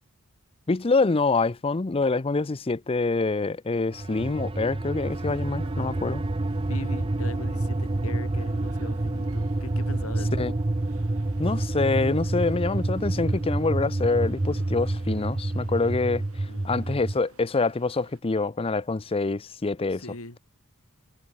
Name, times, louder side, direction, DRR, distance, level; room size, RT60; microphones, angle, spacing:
voice 1, 0.7-6.2 10.4-10.5 11.4-16.2 16.6-20.0, left 3 dB, 25° left, 0.5 m, -26 dB
sound 1, 3.9-17.2, right 2 dB, 25° right, 0.6 m, -28 dB
sound 2, 5.1-18.2, right 3 dB, 75° right, 6.0 m, -55 dB
voice 2, 6.7-10.4 16.5-16.7 19.9-20.4, left 2 dB, 70° left, 4.7 m, -40 dB
head